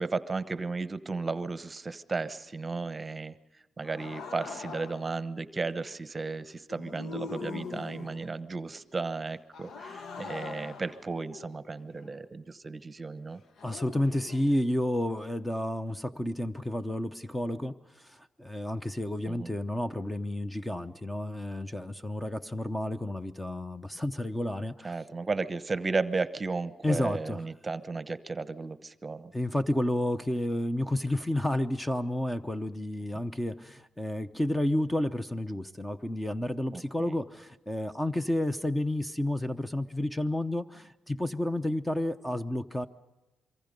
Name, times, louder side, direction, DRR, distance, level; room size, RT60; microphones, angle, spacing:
voice 1, 0.0-3.4 3.8-13.4 19.3-19.5 24.8-29.3 36.7-37.2, right 3 dB, 25° right, 13 dB, 0.9 m, -34 dB
sound 1, 3.8-5.2 6.7-8.4 9.5-12.2 13.6-14.6, left 5 dB, 65° left, 1.1 m, -43 dB
voice 2, 13.6-24.9 26.8-27.4 29.3-42.9, left 1 dB, 10° left, 9 dB, 0.8 m, -31 dB
26.0 x 23.5 x 5.3 m, 1.0 s
cardioid pair, 90°, 0 cm